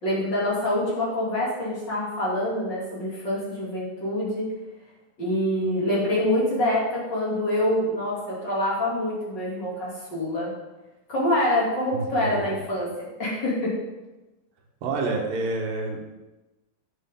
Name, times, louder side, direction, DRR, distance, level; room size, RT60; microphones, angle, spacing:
voice 1, 0.0-4.5 5.2-10.5 11.1-12.9 13.2-13.7, left 1 dB, 35° left, -7 dB, 3.0 m, -25 dB
voice 2, 11.9-12.4 14.8-16.0, right 3 dB, 80° right, 1 dB, 3.0 m, -28 dB
11.0 x 8.4 x 3.7 m, 1.1 s
omnidirectional pair, 4.0 m